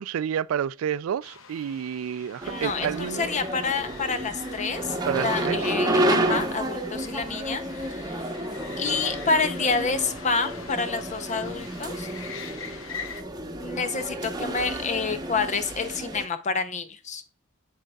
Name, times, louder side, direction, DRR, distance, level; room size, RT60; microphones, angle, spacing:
voice 1, 0.0-3.3 5.1-5.7, right 8 dB, 80° right, 0.3 m, -29 dB
sound 1, 1.2-13.2, left 6 dB, 70° left, 0.7 m, -44 dB
voice 2, 2.4-8.3 8.8-12.1 13.6-17.2, left 4 dB, 35° left, 0.7 m, -28 dB
sound 2, 2.4-16.3, right 1 dB, 20° right, 1.0 m, -30 dB
7.7 x 6.4 x 2.3 m
head